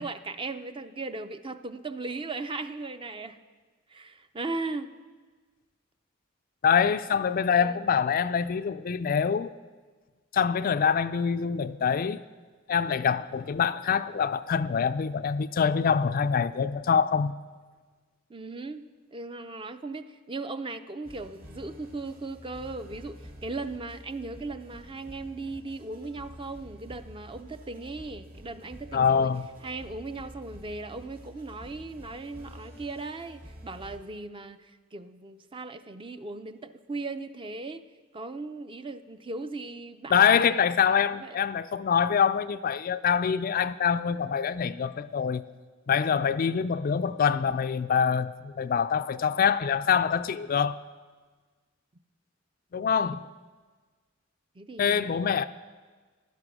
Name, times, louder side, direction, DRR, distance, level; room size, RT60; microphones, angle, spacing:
voice 1, 0.0-3.4 3.9-4.9 7.6-7.8 18.3-18.8 19.1-29.3 29.6-34.7 34.9-37.8 38.1-41.4 54.6-55.1, right 3 dB, 25° right, 0.5 m, -38 dB
voice 2, 6.6-9.5 10.3-12.2 12.7-17.3 28.9-29.5 40.1-45.4 45.9-50.8 52.7-53.2 54.8-55.5, left 7 dB, 45° left, 0.4 m, -25 dB
sound 1, 21.0-34.0, equal, 50° right, 2.4 m, -48 dB
15.0 x 11.5 x 6.1 m
head